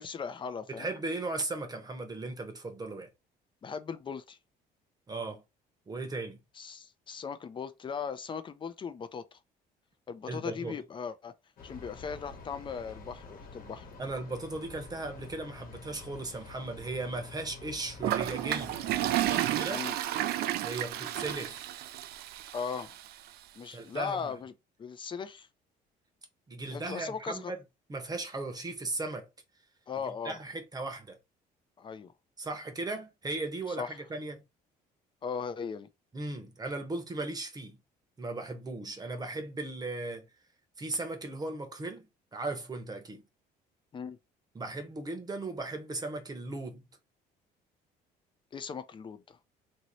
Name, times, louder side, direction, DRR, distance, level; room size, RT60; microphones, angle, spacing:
voice 1, 0.0-0.9 3.6-4.4 6.6-9.4 10.1-11.3 11.6-13.9 19.7-20.0 22.5-23.0 23.5-24.5 24.8-25.5 26.7-27.5 29.9-30.4 31.8-32.1 33.7-33.9 35.2-35.9 43.9-44.2 48.5-49.4, left 6 dB, 30° left, 0.5 m, -38 dB
voice 2, 0.8-3.1 5.1-5.4 5.9-6.4 10.3-10.8 14.0-18.8 19.2-19.9 20.6-21.7 23.7-24.4 26.5-27.6 27.9-29.3 30.2-31.2 32.4-34.4 36.1-37.8 38.2-40.3 40.8-43.3 44.5-46.8, right 2 dB, 20° right, 0.9 m, -37 dB
Train, 11.6-19.4, left 4 dB, 55° left, 1.1 m, -48 dB
Toilet flush, 18.0-23.1, right 13 dB, 70° right, 0.4 m, -32 dB
3.0 x 2.7 x 3.0 m
cardioid pair, 110°, 17 cm